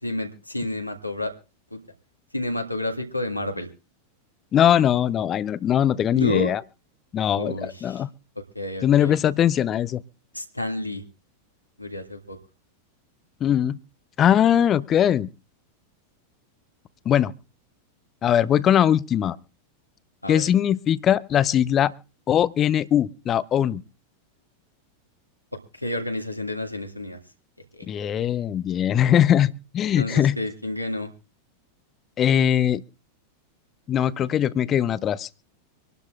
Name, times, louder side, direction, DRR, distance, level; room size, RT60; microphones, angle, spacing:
voice 1, 0.0-1.3 1.7-1.8 2.3-3.7 6.1-6.5 7.4-8.0 8.6-9.2 10.3-11.0 11.8-12.4 20.2-20.5 25.7-27.2 27.7-27.9 30.0-31.1, left 1 dB, 90° left, 1.8 m, -30 dB
voice 2, 4.5-6.6 7.1-8.1 8.8-10.0 13.4-13.8 14.2-15.3 17.1-17.3 18.2-19.4 20.3-21.9 22.3-23.8 27.9-30.4 32.2-32.8 33.9-35.3, left 10 dB, 30° left, 0.6 m, -21 dB
25.5 x 12.0 x 2.4 m
figure-of-eight pair, 90°, 0 cm